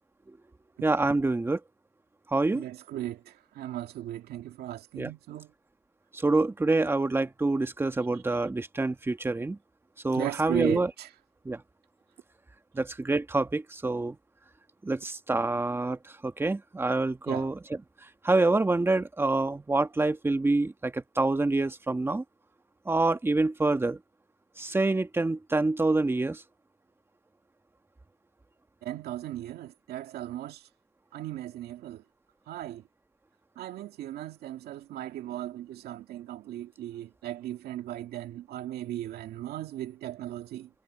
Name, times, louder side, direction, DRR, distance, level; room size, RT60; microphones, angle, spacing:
voice 1, 0.8-1.6 2.3-2.6 5.0-5.1 6.1-9.6 10.0-10.9 11.4-11.6 12.7-14.2 14.8-17.8 18.2-22.2 22.8-24.0 24.6-26.4, right 2 dB, 15° right, 1.6 m, -26 dB
voice 2, 2.5-5.5 10.1-11.1 17.3-17.5 28.8-30.6 31.1-32.0 32.5-32.8 33.6-40.7, right 13 dB, 70° right, 2.1 m, -37 dB
cardioid pair, 110°, 17 cm